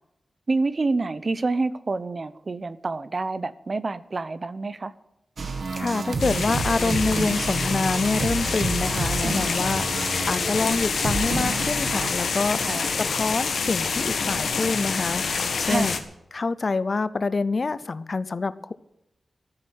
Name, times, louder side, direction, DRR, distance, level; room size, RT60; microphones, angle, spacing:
voice 1, 0.5-4.9 12.6-12.9 15.7-16.0, right 3 dB, 40° right, 15 dB, 0.8 m, -27 dB
sound 1, 5.4-12.1, right 3 dB, 60° right, 1.7 m, -29 dB
voice 2, 5.7-16.0 16.3-18.7, left 3 dB, 45° left, 16 dB, 0.6 m, -26 dB
sound 2, 6.2-16.0, left 5 dB, 80° left, 1.5 m, -27 dB
13.5 x 7.5 x 9.8 m, 0.88 s
wide cardioid pair, 110°, 0 cm